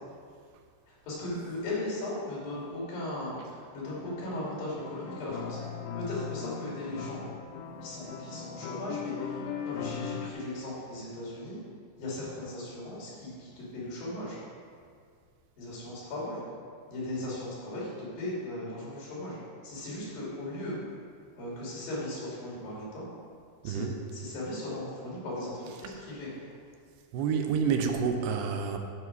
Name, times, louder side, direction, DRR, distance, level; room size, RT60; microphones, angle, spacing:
voice 1, 0.9-5.6 5.9-7.2 7.8-11.6 12.0-14.4 15.6-16.4 16.9-19.4 19.6-20.8 21.4-23.1 23.6-26.5, left 1 dB, 65° left, -6 dB, 4.3 m, -37 dB
sound 1, 3.8-10.3, left 7 dB, 85° left, 1.8 m, -39 dB
voice 2, 23.6-24.0 27.1-28.8, right 6 dB, 90° right, 5 dB, 2.7 m, -28 dB
12.0 x 6.0 x 4.7 m, 2.1 s
omnidirectional pair, 4.5 m